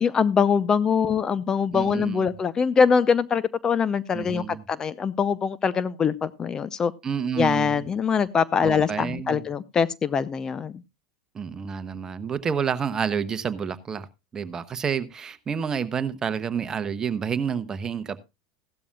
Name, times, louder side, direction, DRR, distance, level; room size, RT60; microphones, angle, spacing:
voice 1, 0.0-6.9 7.4-10.8, left 6 dB, 25° left, 17 dB, 0.6 m, -23 dB
voice 2, 1.7-2.3 4.1-4.6 7.0-7.9 8.6-9.4 11.3-14.1 14.3-18.2, right 7 dB, 25° right, 12 dB, 1.0 m, -29 dB
16.0 x 12.5 x 2.3 m, 0.24 s
hypercardioid pair, 90°, 2 cm